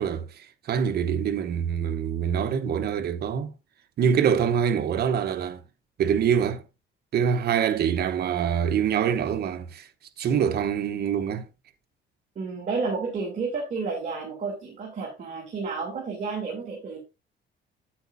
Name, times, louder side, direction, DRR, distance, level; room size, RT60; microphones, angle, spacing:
voice 1, 0.0-3.5 4.0-5.6 6.0-6.6 7.1-9.9 10.2-11.5, right 8 dB, 55° right, 1.0 m, -25 dB
voice 2, 12.3-17.0, right 4 dB, 40° right, 3.1 m, -31 dB
9.3 x 8.7 x 2.6 m
cardioid pair, 145°, 20 cm